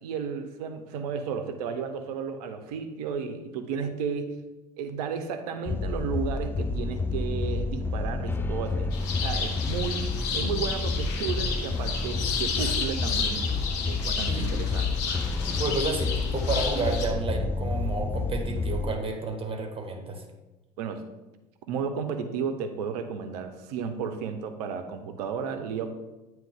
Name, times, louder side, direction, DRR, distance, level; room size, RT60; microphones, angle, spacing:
voice 1, 0.0-4.4 4.8-8.9 9.2-10.1 10.3-13.5 13.9-14.9 20.8-21.0 21.7-25.9, right 6 dB, 70° right, 8 dB, 0.7 m, -33 dB
sound 1, 5.6-18.9, left 3 dB, 10° left, 0.4 m, -29 dB
sound 2, 8.9-17.1, left 6 dB, 65° left, 1.0 m, -32 dB
voice 2, 15.4-20.2, right 3 dB, 25° right, 4 dB, 1.3 m, -31 dB
8.9 x 3.1 x 3.5 m, 1.1 s
figure-of-eight pair, 65°, 21 cm